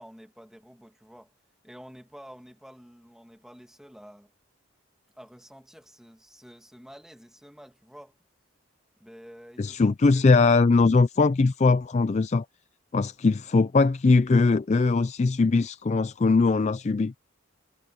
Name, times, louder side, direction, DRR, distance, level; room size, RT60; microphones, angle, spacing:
voice 1, 0.0-1.3 1.6-4.3 5.1-8.2 9.0-9.8 10.1-10.2, equal, 5° right, 2.3 m, -49 dB
voice 2, 9.6-12.5 12.9-17.1, left 3 dB, 35° left, 0.4 m, -21 dB
head